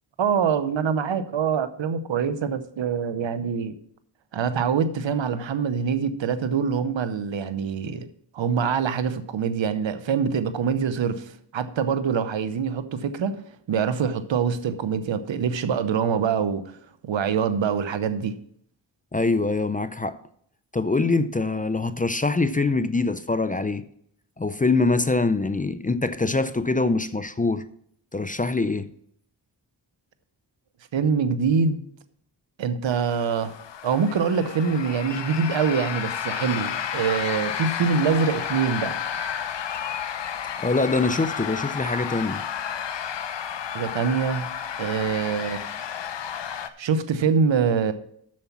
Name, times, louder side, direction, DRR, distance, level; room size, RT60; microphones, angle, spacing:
voice 1, 0.2-3.7 4.3-8.1 8.3-13.4 13.7-16.6 17.0-18.4 30.9-31.8 32.6-33.5 33.8-39.0 43.7-44.5 44.8-45.6 46.8-47.9, right 6 dB, 75° right, 0.9 m, -24 dB
voice 2, 19.1-20.2 20.7-23.8 24.4-27.6 28.1-28.9 40.6-42.4, left 3 dB, 20° left, 0.5 m, -24 dB
sound 1, 32.9-46.7, left 8 dB, 70° left, 0.8 m, -32 dB
7.5 x 6.9 x 5.9 m
cardioid pair, 60°, 45 cm